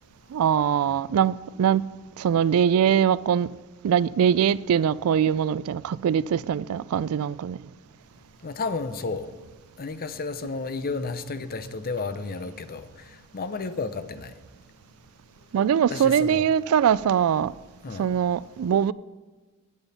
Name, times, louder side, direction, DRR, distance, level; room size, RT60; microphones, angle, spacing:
voice 1, 0.3-1.9 2.2-3.5 3.8-7.6 15.5-17.5 18.0-18.9, right 8 dB, 70° right, 0.3 m, -22 dB
voice 2, 8.4-9.3 9.8-12.9 13.3-14.3 15.9-16.5 17.8-18.1, left 4 dB, 40° left, 0.7 m, -32 dB
17.0 x 8.8 x 4.2 m
head